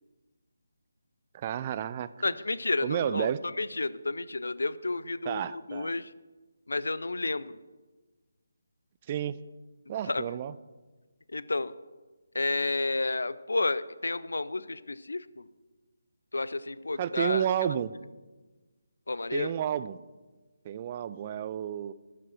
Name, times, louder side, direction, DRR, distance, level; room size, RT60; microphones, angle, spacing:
voice 1, 1.3-2.1 2.8-3.4 5.3-5.9 9.1-9.4 9.9-10.5 17.0-18.0 19.3-20.0 20.6-21.9, right 10 dB, 30° right, 16 dB, 0.4 m, -31 dB
voice 2, 2.2-6.1 6.7-7.6 10.1-10.2 11.3-11.7 12.3-15.4 16.3-17.4 19.1-19.5, left 2 dB, 70° left, 17 dB, 0.5 m, -31 dB
12.0 x 7.5 x 6.0 m, 1.3 s
figure-of-eight pair, 150°, 0 cm